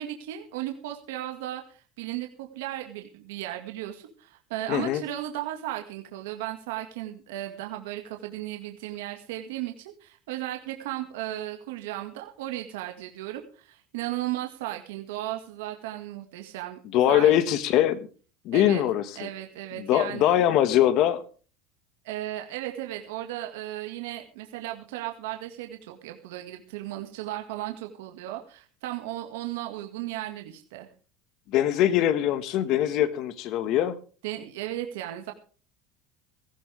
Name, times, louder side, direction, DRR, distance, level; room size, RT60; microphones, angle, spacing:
voice 1, 0.0-16.8 17.1-17.3 18.5-18.8 19.2-20.3 22.0-30.9 34.2-35.3, right 14 dB, 90° right, 4 dB, 2.0 m, -35 dB
voice 2, 4.7-5.0 16.9-18.0 18.4-19.3 19.8-21.2 31.5-34.0, left 11 dB, 55° left, 13 dB, 1.6 m, -22 dB
17.5 x 15.0 x 3.5 m, 0.38 s
supercardioid pair, 140°, 0 cm